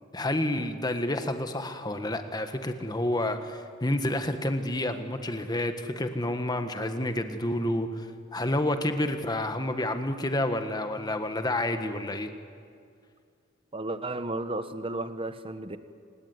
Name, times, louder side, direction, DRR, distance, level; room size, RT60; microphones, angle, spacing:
voice 1, 0.1-12.3, left 1 dB, 20° left, 7 dB, 1.5 m, -29 dB
voice 2, 13.7-15.8, right 2 dB, 25° right, 11 dB, 1.1 m, -33 dB
27.5 x 17.5 x 9.7 m, 2.3 s
head